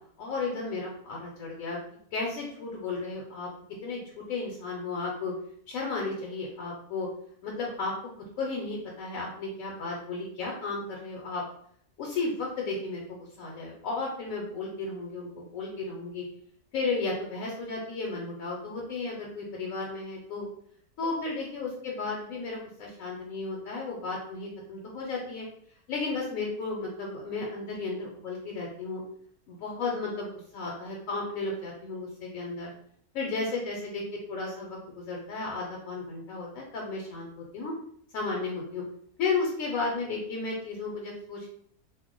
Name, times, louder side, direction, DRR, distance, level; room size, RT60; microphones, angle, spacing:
voice 1, 0.2-1.8 2.1-3.5 3.8-4.0 4.3-5.3 5.7-7.1 7.4-7.9 8.4-11.4 12.0-16.2 16.7-20.5 21.0-25.5 25.9-29.0 29.5-32.7 33.1-34.0 34.3-37.3 37.5-37.7 38.1-38.8 39.2-41.5, left 3 dB, 75° left, -2 dB, 1.0 m, -34 dB
2.5 x 2.1 x 3.6 m, 0.65 s
omnidirectional pair, 1.5 m